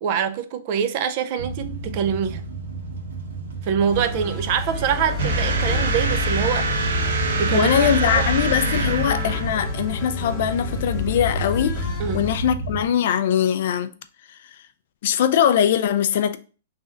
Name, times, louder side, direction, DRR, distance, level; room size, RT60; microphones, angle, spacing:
voice 1, 0.0-2.4 3.6-7.0 7.4-7.7 8.0-8.3 12.0-12.3, right 8 dB, 30° right, 0.3 m, -25 dB
sound 1, 1.4-12.9, right 2 dB, 90° right, 1.1 m, -33 dB
sound 2, 3.9-12.3, left 6 dB, 10° left, 0.6 m, -30 dB
sound 3, 5.2-9.9, right 3 dB, 65° right, 0.9 m, -25 dB
voice 2, 7.5-13.9 14.3-14.6 15.0-16.4, left 9 dB, 45° left, 0.3 m, -22 dB
3.6 x 3.2 x 3.7 m
hypercardioid pair, 175°, 0 cm